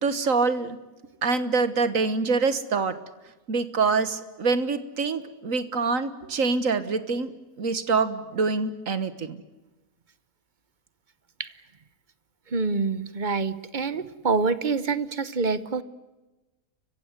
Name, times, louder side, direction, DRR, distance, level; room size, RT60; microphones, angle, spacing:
voice 1, 0.0-0.8 1.2-3.0 3.5-7.3 7.6-9.4, right 4 dB, 70° right, 13 dB, 1.8 m, -25 dB
voice 2, 12.5-15.8, right 4 dB, 35° right, 15 dB, 1.1 m, -26 dB
30.0 x 16.0 x 9.7 m, 1.1 s
omnidirectional pair, 1.5 m